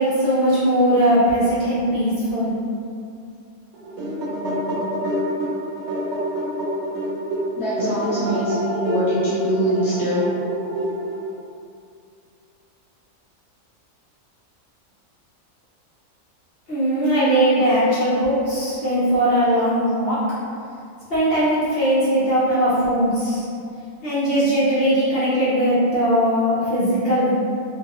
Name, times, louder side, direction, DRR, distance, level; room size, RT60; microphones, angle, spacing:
voice 1, 0.0-2.6 16.7-20.2 21.1-23.5 24.0-27.3, equal, 45° left, -11 dB, 1.0 m, -19 dB
sound 1, 3.7-11.4, equal, 65° right, 0.7 m, -27 dB
voice 2, 7.6-10.3, equal, ahead, -12 dB, 0.5 m, -23 dB
3.1 x 2.3 x 2.8 m, 2.4 s
omnidirectional pair, 1.5 m